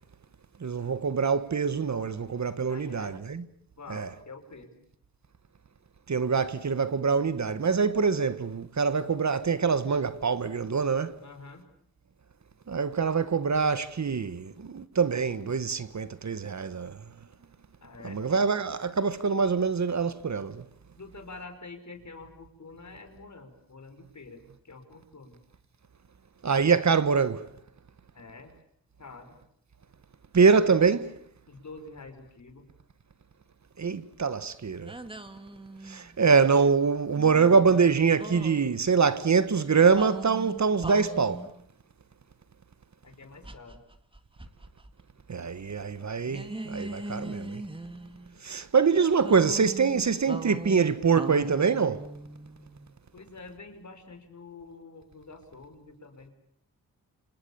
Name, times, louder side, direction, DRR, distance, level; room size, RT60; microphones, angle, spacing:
voice 1, 0.6-3.4 3.9-4.1 6.1-11.2 12.7-17.0 18.0-20.6 26.4-27.5 30.3-31.2 33.8-34.9 35.9-41.5 45.3-47.6 48.4-52.1, right 5 dB, 50° right, 1.5 m, -24 dB
voice 2, 2.7-3.2 3.8-4.7 11.2-11.7 17.8-18.2 21.0-25.4 28.1-28.5 29.0-29.3 31.5-32.7 43.0-43.8 53.1-56.3, left 3 dB, 55° left, 5.3 m, -47 dB
sound 1, 34.9-36.2 37.1-38.6 39.9-41.5 43.4-44.9 45.2-45.3 46.3-48.4 49.2-52.9, right 2 dB, 15° right, 2.2 m, -40 dB
28.5 x 27.5 x 7.1 m
cardioid pair, 70°, 35 cm